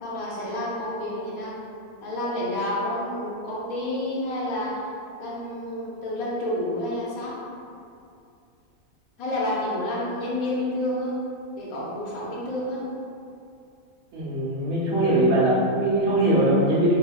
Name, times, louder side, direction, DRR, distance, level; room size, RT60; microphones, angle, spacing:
voice 1, 0.0-1.5 2.0-4.8 5.2-7.3 9.2-11.2 11.6-12.9, left 1 dB, 90° left, -6 dB, 1.2 m, -29 dB
voice 2, 14.1-17.0, right 1 dB, 80° right, -7 dB, 1.3 m, -21 dB
3.4 x 2.7 x 2.3 m, 2.5 s
omnidirectional pair, 1.4 m